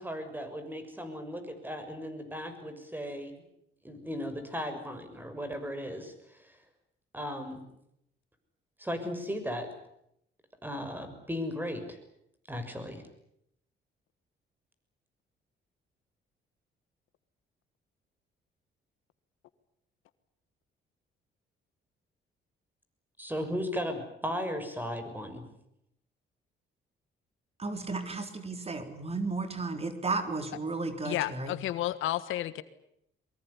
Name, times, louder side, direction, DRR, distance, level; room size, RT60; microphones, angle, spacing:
voice 1, 0.0-3.3 3.8-6.6 7.1-7.6 8.8-9.7 10.6-12.0 12.5-13.0 23.2-25.5, equal, 10° right, 9 dB, 6.6 m, -36 dB
voice 2, 27.6-31.6, right 3 dB, 30° right, 8 dB, 3.9 m, -34 dB
voice 3, 31.0-32.6, left 14 dB, 90° left, 14 dB, 1.5 m, -31 dB
23.0 x 22.5 x 10.0 m, 0.76 s
cardioid pair, 90°, 20 cm